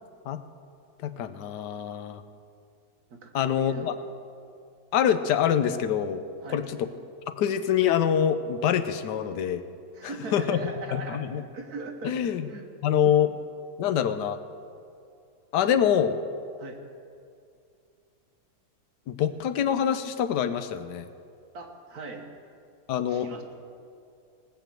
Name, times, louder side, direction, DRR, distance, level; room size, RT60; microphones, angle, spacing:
voice 1, 1.0-2.2 3.3-3.9 4.9-6.2 6.5-6.9 7.4-9.6 10.0-11.4 12.0-12.5 12.8-13.3 13.8-14.4 15.5-16.2 19.1-21.1 22.9-23.3, left 9 dB, 90° left, 10 dB, 1.3 m, -25 dB
voice 2, 3.1-4.0 6.4-6.6 9.9-12.1 12.5-12.7 16.6-16.8 21.5-22.3 23.1-23.4, right 3 dB, 65° right, 3 dB, 1.8 m, -39 dB
19.0 x 6.9 x 7.6 m, 2.4 s
omnidirectional pair, 1.8 m